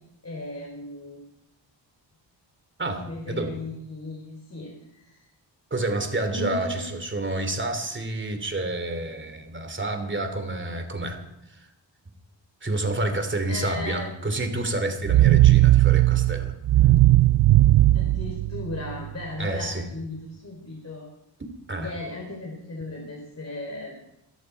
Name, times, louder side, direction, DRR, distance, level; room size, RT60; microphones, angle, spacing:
voice 1, 0.2-1.2 2.9-5.2 6.3-6.9 13.5-14.1 17.9-21.1 21.8-24.1, left 2 dB, 35° left, 0 dB, 3.7 m, -36 dB
voice 2, 2.8-3.5 5.7-11.2 11.5-11.7 12.6-16.5 19.4-19.9 21.7-21.9, right 2 dB, 25° right, 7 dB, 2.8 m, -29 dB
sound 1, 15.1-19.1, right 16 dB, 65° right, 0.5 m, -18 dB
22.5 x 13.5 x 4.6 m, 0.79 s
wide cardioid pair, 115°, 45 cm